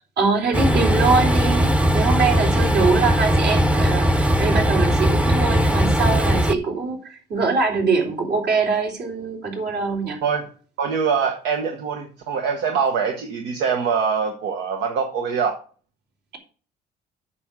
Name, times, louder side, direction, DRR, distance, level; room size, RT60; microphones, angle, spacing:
voice 1, 0.2-10.2, right 4 dB, 70° right, 0 dB, 3.5 m, -23 dB
Train, 0.5-6.6, equal, 5° right, 0.6 m, -19 dB
voice 2, 10.8-15.6, right 6 dB, 90° right, 4 dB, 1.2 m, -24 dB
8.5 x 6.1 x 6.2 m, 0.41 s
cardioid pair, 110°, 17 cm